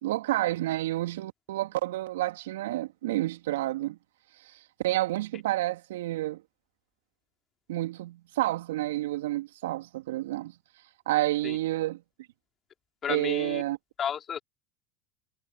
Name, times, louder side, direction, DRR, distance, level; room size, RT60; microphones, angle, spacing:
voice 1, 0.0-4.0 4.8-6.4 7.7-10.5 11.1-12.0 13.1-13.8, right 16 dB, 75° right, 3.1 m, -29 dB
voice 2, 13.0-13.6 14.0-14.4, left 8 dB, 35° left, 4.5 m, -32 dB
hypercardioid pair, 80°, 0 cm